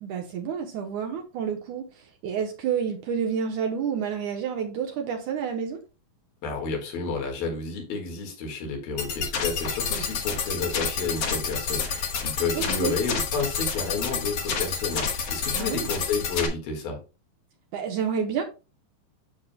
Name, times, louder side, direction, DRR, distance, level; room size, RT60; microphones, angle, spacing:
voice 1, 0.0-5.8 12.5-12.9 15.5-15.9 17.7-18.4, right 7 dB, 70° right, 3 dB, 2.0 m, -29 dB
voice 2, 6.4-17.0, left 4 dB, 75° left, 3 dB, 3.6 m, -31 dB
sound 1, 9.0-16.5, left 6 dB, 55° left, 1.9 m, -29 dB
9.8 x 7.3 x 2.2 m, 0.30 s
omnidirectional pair, 4.3 m